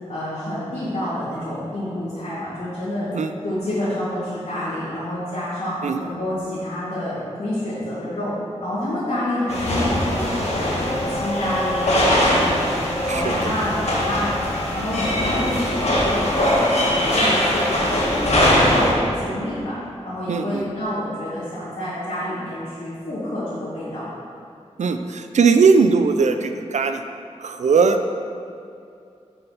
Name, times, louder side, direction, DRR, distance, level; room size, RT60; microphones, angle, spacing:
voice 1, 0.1-3.1 3.4-8.3 8.6-12.8 13.0-19.8 20.0-24.0, left 1 dB, 85° left, -12 dB, 1.7 m, -28 dB
sound 1, 9.5-18.9, left 1 dB, 65° left, 1.4 m, -21 dB
voice 2, 20.3-20.6 24.8-27.0 27.4-28.1, right 5 dB, 80° right, 8 dB, 0.4 m, -19 dB
6.7 x 4.4 x 5.5 m, 2.5 s
wide cardioid pair, 100°, 12 cm